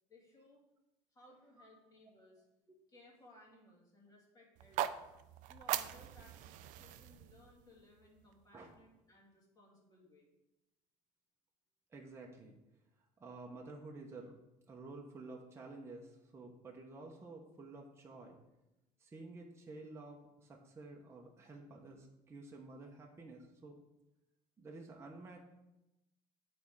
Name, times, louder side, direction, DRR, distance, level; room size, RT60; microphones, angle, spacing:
voice 1, 0.1-0.6 1.1-2.4 2.9-5.1 5.4-10.3, left 1 dB, 25° left, -2 dB, 2.3 m, -62 dB
sound 1, 4.6-8.7, right 12 dB, 70° right, 0.4 m, -42 dB
voice 2, 11.9-12.6 13.2-14.4 14.7-18.4 19.0-23.8 24.6-25.4, right 3 dB, 20° right, -1 dB, 1.0 m, -51 dB
7.9 x 4.3 x 4.7 m, 0.94 s
cardioid pair, 120°, 14 cm